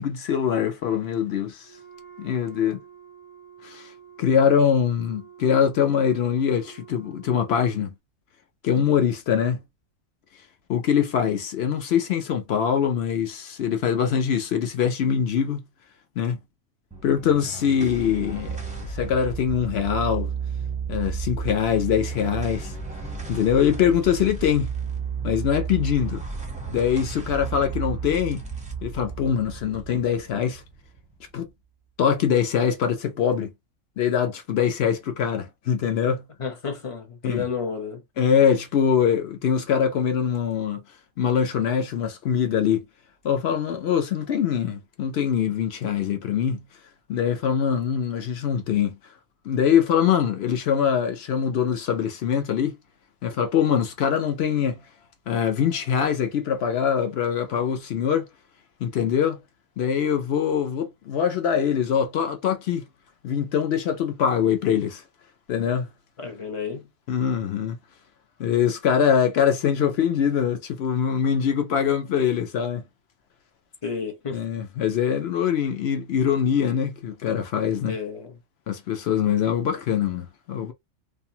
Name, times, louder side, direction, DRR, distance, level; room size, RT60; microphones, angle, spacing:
voice 1, 0.0-1.7 2.2-2.8 3.6-3.9 4.2-7.9 8.6-9.6 10.7-15.6 16.2-16.4 17.0-18.6 18.9-20.3 20.9-22.7 23.3-24.7 25.2-26.2 26.7-28.4 28.8-30.6 31.3-31.5 32.0-33.5 34.0-36.2 37.2-37.4 38.2-40.8 41.2-42.8 43.2-46.6 47.1-49.0 49.4-52.7 53.2-54.8 55.3-58.3 58.8-59.4 59.8-62.8 63.2-65.0 65.5-65.9 67.1-67.8 68.4-72.8 74.3-78.0 78.7-80.7, left 8 dB, 60° left, 0.8 m, -23 dB
Wind instrument woodwind instrument, 1.6-7.7, right 8 dB, 55° right, 0.6 m, -48 dB
sound 1, 16.9-31.5, right 5 dB, 10° right, 0.6 m, -33 dB
voice 2, 36.4-38.0 66.2-66.9 73.8-74.4 77.8-78.4, left 5 dB, 40° left, 0.5 m, -31 dB
2.6 x 2.3 x 2.7 m
omnidirectional pair, 1.4 m